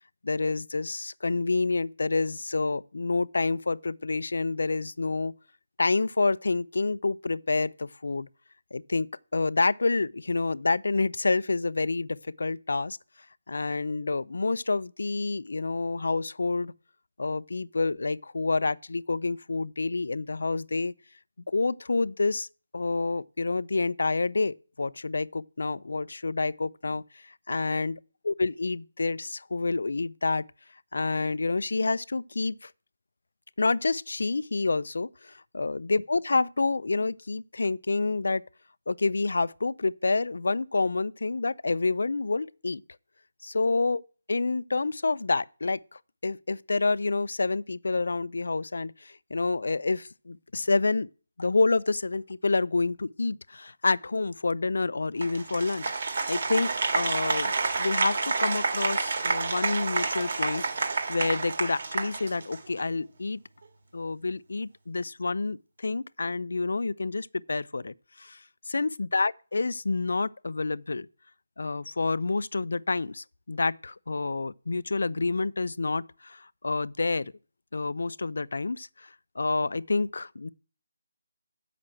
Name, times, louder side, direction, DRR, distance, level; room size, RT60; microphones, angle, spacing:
voice 1, 0.2-5.3 5.8-8.3 8.7-13.0 13.5-16.7 17.2-20.9 21.5-22.5 22.7-28.0 28.2-30.5 30.9-32.7 33.6-38.5 38.9-42.8 43.4-44.0 44.3-51.1 51.4-55.9 56.3-56.7 56.9-63.4 63.9-68.4 68.7-71.1 71.6-77.3 77.7-79.1 79.4-80.5, left 3 dB, 70° left, 0.4 m, -28 dB
Applause, 55.2-62.8, right 4 dB, 50° right, 1.6 m, -29 dB
7.6 x 5.9 x 7.6 m
hypercardioid pair, 175°, 0 cm